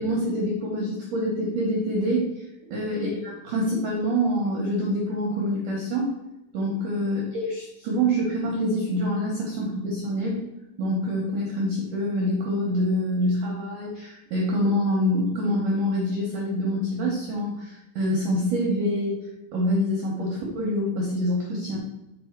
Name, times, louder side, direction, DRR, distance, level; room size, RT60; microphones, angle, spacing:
voice 1, 0.0-2.4 2.7-6.1 6.5-10.4 10.8-19.2 19.5-21.8, equal, 75° right, -2 dB, 1.9 m, -26 dB
7.0 x 5.0 x 4.6 m, 0.94 s
omnidirectional pair, 5.6 m